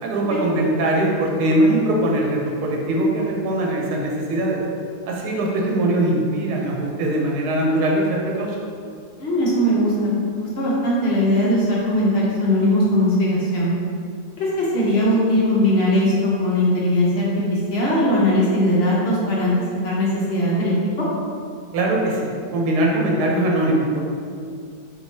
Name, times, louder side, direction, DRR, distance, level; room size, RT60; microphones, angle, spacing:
voice 1, 0.0-4.6 5.1-8.6 21.7-24.0, right 1 dB, 75° right, -1 dB, 1.2 m, -21 dB
voice 2, 9.2-13.7 14.4-19.5 19.8-21.1, left 1 dB, 50° left, -6 dB, 0.8 m, -20 dB
4.6 x 2.9 x 2.7 m, 2.3 s
omnidirectional pair, 1.7 m